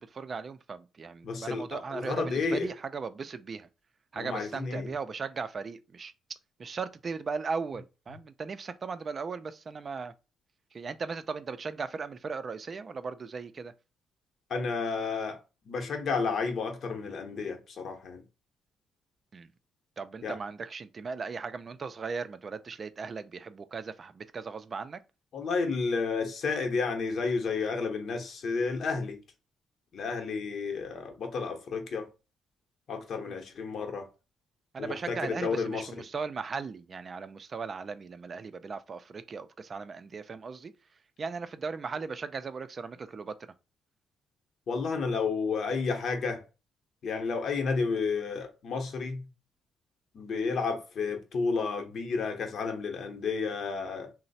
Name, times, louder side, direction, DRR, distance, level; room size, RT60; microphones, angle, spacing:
voice 1, 0.0-3.7 4.1-6.1 6.6-10.1 10.7-13.7 19.3-19.5 20.0-25.0 33.3-33.4 34.7-40.7 41.2-43.4, right 5 dB, 40° right, 0.4 m, -37 dB
voice 2, 1.2-2.7 4.1-4.9 14.5-15.4 15.6-18.2 20.2-20.4 25.3-29.2 29.9-32.1 32.9-34.1 34.8-36.0 44.7-46.4 47.0-49.3 50.1-54.1, left 4 dB, 60° left, 0.8 m, -31 dB
3.0 x 2.0 x 4.1 m
cardioid pair, 90°, 0 cm